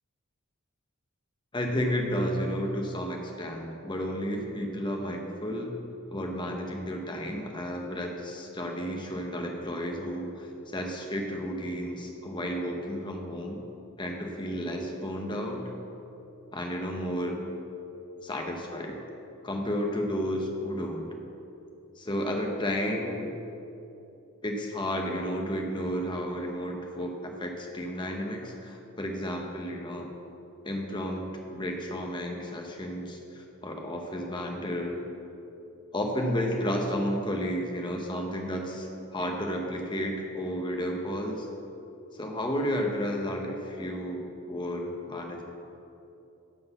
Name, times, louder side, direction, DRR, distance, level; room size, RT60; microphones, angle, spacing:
voice 1, 1.5-5.7 6.1-13.6 14.0-15.6 16.5-17.4 18.2-19.0 19.4-21.1 22.0-23.3 24.4-30.1 30.6-35.0 35.9-41.5 42.1-45.4, equal, 20° left, 2 dB, 0.9 m, -32 dB
11.0 x 3.9 x 7.0 m, 2.9 s
head